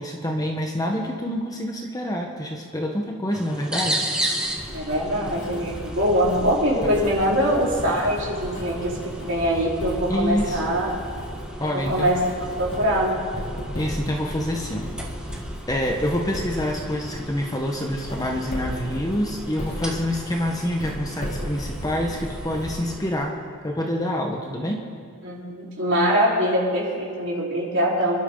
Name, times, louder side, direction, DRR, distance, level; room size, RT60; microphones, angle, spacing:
voice 1, 0.0-4.1 6.8-6.9 10.1-10.8 11.6-12.2 13.7-14.9 15.7-23.4 23.6-24.8, left 1 dB, 15° left, 1 dB, 1.3 m, -27 dB
sound 1, 3.3-23.1, right 1 dB, 5° right, 1.4 m, -35 dB
Writing, 4.4-23.3, equal, 45° left, 4.7 m, -35 dB
voice 2, 4.7-10.9 11.6-13.2 24.5-24.6 25.2-28.2, equal, 55° right, -5 dB, 4.4 m, -23 dB
28.0 x 12.0 x 4.0 m, 2.1 s
head